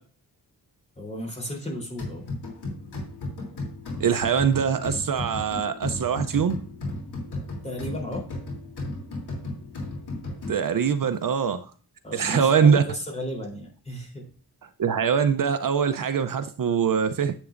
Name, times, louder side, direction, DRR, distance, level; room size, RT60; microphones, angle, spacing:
voice 1, 1.0-2.2 7.6-8.3 12.0-14.3, equal, 15° left, 0 dB, 3.5 m, -34 dB
sound 1, 2.0-10.9, left 2 dB, 90° left, 3.1 m, -35 dB
voice 2, 4.0-6.6 10.5-11.7 12.1-12.8 14.8-17.3, right 7 dB, 60° right, 9 dB, 0.7 m, -23 dB
10.0 x 8.1 x 2.5 m, 0.41 s
wide cardioid pair, 120°, 38 cm